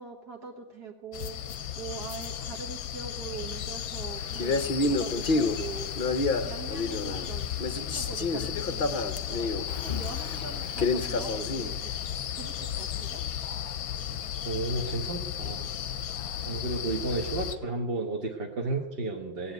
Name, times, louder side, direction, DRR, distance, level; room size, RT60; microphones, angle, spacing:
voice 1, 0.0-1.4 1.8-5.9 6.4-11.7 12.3-13.2 16.4-16.7, right 5 dB, 65° right, 0 dB, 2.0 m, -43 dB
sound 1, 1.1-17.6, left 9 dB, 65° left, 1.1 m, -35 dB
Male speech man speaking, 4.3-7.3 7.6-11.7, left 3 dB, 40° left, 0.8 m, -29 dB
voice 2, 14.4-15.7 16.5-19.5, right 2 dB, 40° right, 0 dB, 1.3 m, -32 dB
17.5 x 8.5 x 9.2 m, 1.2 s
omnidirectional pair, 1.9 m